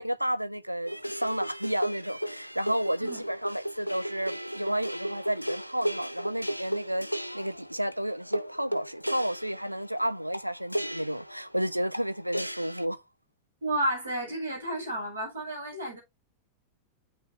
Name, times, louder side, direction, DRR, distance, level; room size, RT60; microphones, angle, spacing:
voice 1, 0.0-13.0, equal, 90° right, 0.6 m, -31 dB
sound 1, 0.9-12.9, equal, 90° left, 0.5 m, -35 dB
voice 2, 13.6-16.0, right 1 dB, 70° right, 6.5 m, -31 dB
8.2 x 6.6 x 3.3 m
figure-of-eight pair, 90°, 0 cm